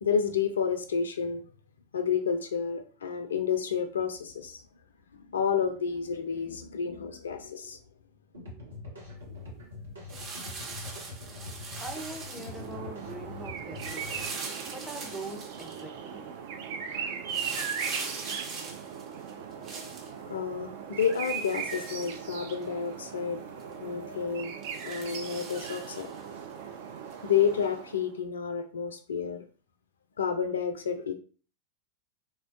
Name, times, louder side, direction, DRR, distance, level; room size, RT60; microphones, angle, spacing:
voice 1, 0.0-1.4 1.9-4.6 5.1-7.8 20.3-23.4 23.8-24.5 24.8-26.1 27.2-29.4 30.2-31.1, left 7 dB, 65° left, 0.3 m, -30 dB
sound 1, 8.3-14.3, left 3 dB, 75° right, 1.2 m, -44 dB
sound 2, 10.1-12.7 13.8-15.8 17.3-20.1 21.0-22.6 23.1-23.2 23.6-23.7 24.6-26.2 27.1-27.2, right 4 dB, 30° right, 0.8 m, -41 dB
voice 2, 10.7-17.6, right 2 dB, 5° left, 0.6 m, -44 dB
sound 3, 12.2-28.1, right 7 dB, 55° right, 0.4 m, -39 dB
3.2 x 2.2 x 2.5 m
figure-of-eight pair, 90°, 0 cm